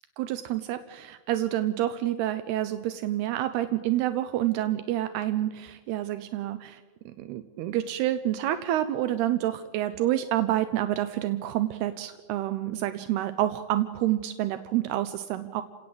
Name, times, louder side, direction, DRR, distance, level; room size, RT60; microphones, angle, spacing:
voice 1, 0.2-6.8 7.2-15.6, right 13 dB, 80° right, 10 dB, 2.9 m, -28 dB
29.5 x 18.0 x 7.8 m, 1.5 s
omnidirectional pair, 4.6 m